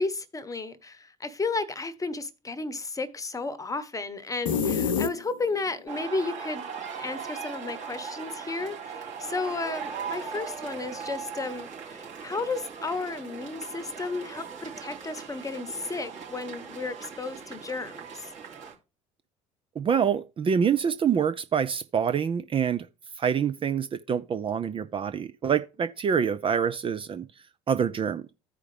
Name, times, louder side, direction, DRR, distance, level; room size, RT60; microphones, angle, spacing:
voice 1, 0.0-6.6 6.9-8.8 9.2-18.3, left 3 dB, 20° left, 1.1 m, -33 dB
sound 1, 4.5-5.7, left 6 dB, 75° left, 0.7 m, -27 dB
sound 2, 5.9-18.7, right 6 dB, 45° right, 3.0 m, -39 dB
voice 2, 19.8-22.9 23.2-27.2 27.7-28.3, right 7 dB, 30° right, 0.6 m, -26 dB
14.0 x 4.9 x 3.3 m
figure-of-eight pair, 60°, 17 cm